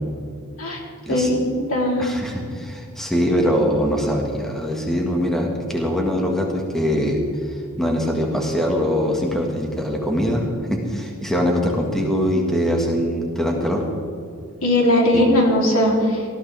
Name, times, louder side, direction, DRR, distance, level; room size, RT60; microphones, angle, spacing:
voice 1, 1.1-2.1 14.6-16.3, left 1 dB, 75° left, -2 dB, 3.5 m, -19 dB
voice 2, 2.0-7.2 7.8-13.8 15.1-15.2, equal, ahead, 0 dB, 1.8 m, -22 dB
18.5 x 14.5 x 3.5 m, 2.4 s
head